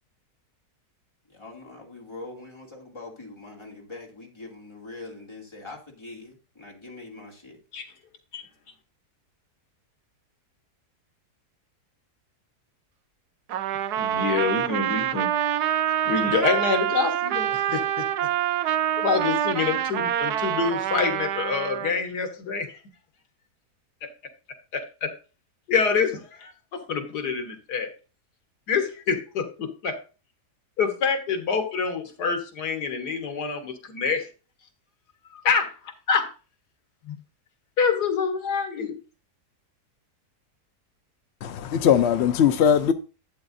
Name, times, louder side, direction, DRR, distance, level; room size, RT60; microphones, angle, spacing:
voice 1, 1.3-8.0, left 2 dB, 15° left, 2.5 m, -43 dB
Trumpet, 13.5-21.9, right 10 dB, 80° right, 1.2 m, -26 dB
voice 2, 14.0-15.3 15.6-15.7 16.1-18.3 19.0-22.8 24.0-24.1 24.7-25.1 25.7-27.9 28.7-30.0 30.8-34.3 35.3-36.3 37.1-37.2 37.8-39.0, left 5 dB, 80° left, 1.9 m, -26 dB
voice 3, 41.4-42.9, left 8 dB, 65° left, 0.7 m, -20 dB
12.0 x 8.4 x 2.6 m
omnidirectional pair, 1.7 m